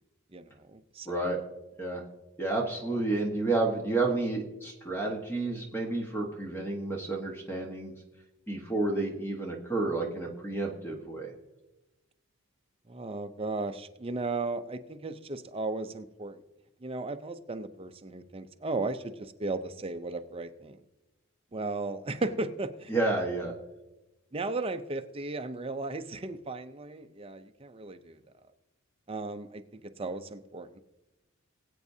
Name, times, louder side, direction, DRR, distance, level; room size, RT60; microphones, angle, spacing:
voice 1, 0.3-1.2 2.9-3.0 12.9-16.4 16.8-20.8 21.5-22.9 24.3-28.2 29.1-30.8, right 3 dB, 25° right, 8 dB, 0.5 m, -36 dB
voice 2, 1.0-1.4 1.8-2.0 2.4-7.9 8.5-11.3 22.9-23.5, right 2 dB, 10° left, 1 dB, 1.2 m, -30 dB
21.5 x 8.2 x 2.7 m, 1.0 s
head